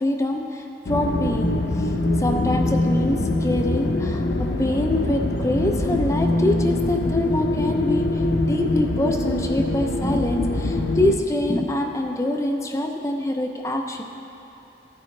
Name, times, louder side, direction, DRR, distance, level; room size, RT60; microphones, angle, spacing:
voice 1, 0.0-1.9 2.2-14.0, left 1 dB, 15° left, 2 dB, 0.5 m, -25 dB
sound 1, 0.9-11.2, left 2 dB, 80° left, 0.7 m, -23 dB
16.0 x 9.0 x 3.2 m, 2.8 s
head